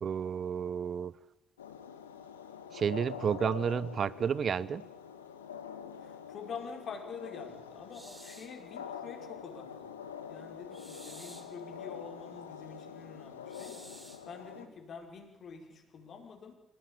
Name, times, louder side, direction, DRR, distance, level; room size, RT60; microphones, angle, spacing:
voice 1, 0.0-1.1 2.7-4.9, right 7 dB, 45° right, 20 dB, 1.0 m, -31 dB
sound 1, 1.6-14.7, left 7 dB, 85° left, 1.8 m, -45 dB
voice 2, 6.0-10.0 10.3-13.8 14.3-16.6, left 5 dB, 50° left, 3 dB, 5.3 m, -46 dB
sound 2, 7.9-8.6 10.7-11.6 13.5-14.3, right 1 dB, 15° right, 4.3 m, -52 dB
26.5 x 19.0 x 8.9 m, 0.93 s
figure-of-eight pair, 50°, 0 cm